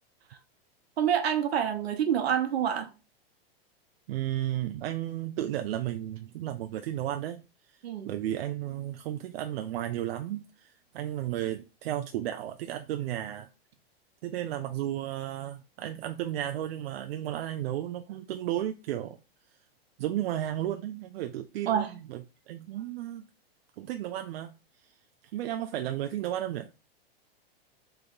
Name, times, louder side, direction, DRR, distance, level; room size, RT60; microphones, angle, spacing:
voice 1, 1.0-2.9 7.8-8.1 21.7-21.9, right 9 dB, 85° right, 1.0 m, -27 dB
voice 2, 4.1-7.4 8.1-13.5 14.2-19.2 20.0-22.2 22.5-23.3 23.8-24.5 25.3-26.7, right 12 dB, 70° right, 0.5 m, -33 dB
3.4 x 3.4 x 3.8 m
hypercardioid pair, 140°, 31 cm